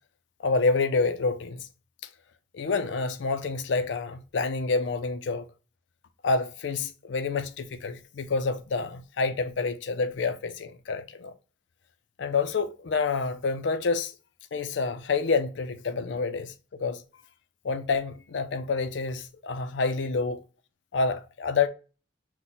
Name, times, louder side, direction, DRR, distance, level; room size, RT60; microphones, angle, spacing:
voice 1, 0.4-1.7 2.5-5.5 6.2-11.3 12.2-14.1 14.5-16.5 16.8-17.0 17.6-20.4 20.9-21.7, left 4 dB, 80° left, 0.4 m, -28 dB
5.9 x 2.1 x 4.0 m
head